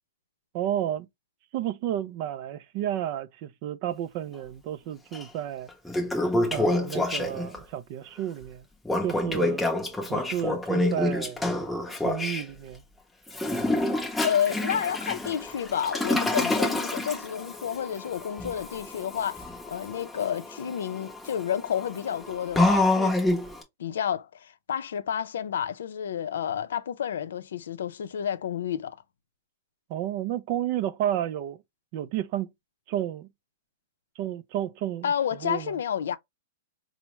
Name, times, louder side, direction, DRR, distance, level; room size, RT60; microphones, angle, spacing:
voice 1, 0.5-1.1 1.5-5.7 6.5-8.7 9.0-9.7 10.1-11.4 12.0-12.8 29.9-31.6 31.9-32.5 32.9-33.3 34.2-35.1 35.4-35.7, right 11 dB, 35° right, 0.3 m, -31 dB
Toilet flush, 5.1-5.2 5.7-7.6 8.8-12.4 13.3-23.6, left 2 dB, 5° left, 0.7 m, -28 dB
voice 2, 14.2-23.1 23.8-29.0 35.0-36.2, left 9 dB, 85° left, 0.5 m, -30 dB
4.5 x 2.0 x 3.0 m
supercardioid pair, 175°, 0 cm